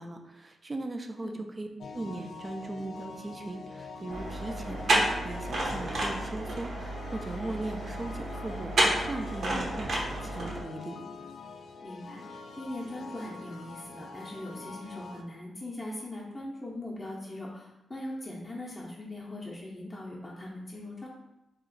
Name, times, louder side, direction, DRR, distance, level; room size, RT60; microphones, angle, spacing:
voice 1, 0.0-1.7 1.9-4.8 5.1-11.0, right 2 dB, 25° right, 5 dB, 0.3 m, -38 dB
sound 1, 1.8-15.2, left 4 dB, 70° left, 0.3 m, -45 dB
sound 2, 4.1-10.6, right 1 dB, 55° right, 0.8 m, -31 dB
voice 2, 4.4-4.8 9.5-9.6 11.8-12.3 12.6-21.1, left 1 dB, 20° left, -4 dB, 0.6 m, -40 dB
2.8 x 2.5 x 3.9 m, 0.90 s
wide cardioid pair, 125°, 0 cm